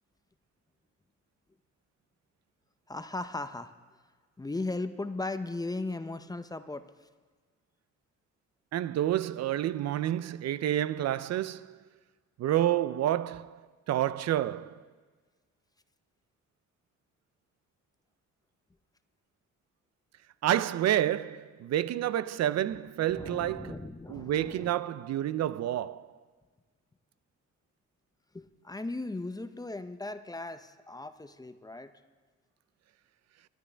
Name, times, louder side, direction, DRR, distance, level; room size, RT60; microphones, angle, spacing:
voice 1, 2.9-3.7 4.4-6.9 23.1-24.7 28.3-31.9, left 2 dB, 15° left, 0.6 m, -37 dB
voice 2, 8.7-11.8 12.4-13.6 13.9-14.8 20.4-23.8 24.1-26.1, right 12 dB, 60° right, 0.5 m, -29 dB
19.5 x 11.0 x 3.4 m
cardioid pair, 90°, 30 cm